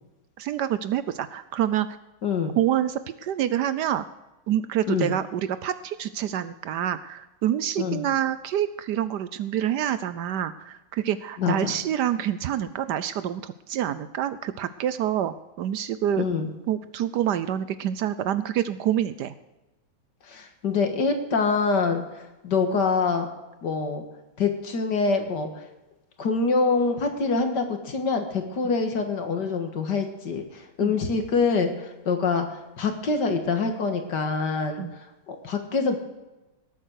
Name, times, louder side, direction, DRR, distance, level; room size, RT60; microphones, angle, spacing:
voice 1, 0.4-1.9 2.6-4.0 4.5-16.2 16.7-19.3 30.8-31.0 34.8-34.9, right 10 dB, 70° right, 14 dB, 1.1 m, -27 dB
voice 2, 2.2-2.5 4.9-5.1 7.8-8.0 11.4-11.7 16.2-16.5 20.2-22.0 22.4-23.3 23.6-24.1 24.4-25.5 26.2-34.8 35.3-36.0, left 4 dB, 60° left, 5 dB, 2.2 m, -25 dB
18.5 x 8.5 x 6.3 m, 1.1 s
omnidirectional pair, 2.2 m